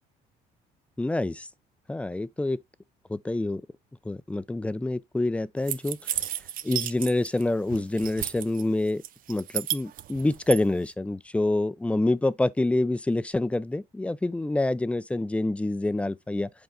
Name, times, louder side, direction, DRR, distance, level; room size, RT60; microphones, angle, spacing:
voice 1, 1.0-1.5 1.9-2.6 3.1-3.6 4.0-6.0 6.6-9.0 9.3-16.5, left 2 dB, 5° left, 0.4 m, -27 dB
sound 1, 5.7-7.4 7.7-8.6 9.0-10.6, right 11 dB, 55° right, 0.5 m, -32 dB
8.0 x 3.8 x 3.4 m
cardioid pair, 110°, 17 cm